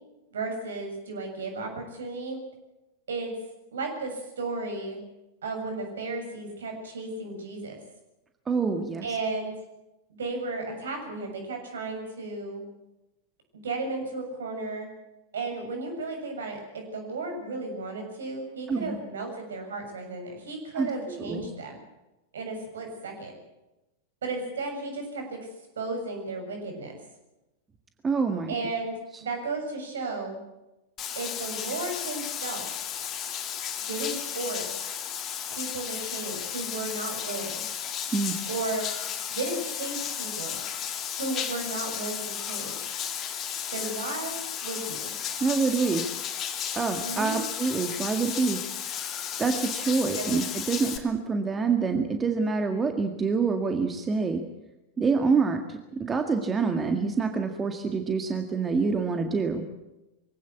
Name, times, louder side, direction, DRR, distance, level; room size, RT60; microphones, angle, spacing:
voice 1, 0.3-2.4 3.1-3.3 3.7-5.0 5.4-7.8 9.0-9.5 10.1-12.6 13.6-14.9 15.3-21.8 22.3-23.3 24.2-25.4 25.8-27.0 28.5-30.4 31.2-32.7 33.9-34.7 35.5-37.7 38.5-38.9 39.3-40.6 41.2-43.0 43.7-45.1 47.0-47.4 50.1-50.3, right 3 dB, 65° right, 4 dB, 7.1 m, -34 dB
voice 2, 8.5-9.1 18.7-19.0 20.8-21.5 28.0-28.5 38.1-38.4 45.4-46.0 46.8-48.6 49.4-54.4 55.0-59.6, right 4 dB, 20° right, 6 dB, 1.9 m, -26 dB
Bathtub (filling or washing), 31.0-51.0, left 9 dB, 30° left, 2.9 m, -34 dB
24.0 x 17.0 x 8.3 m, 0.99 s
figure-of-eight pair, 90°, 0 cm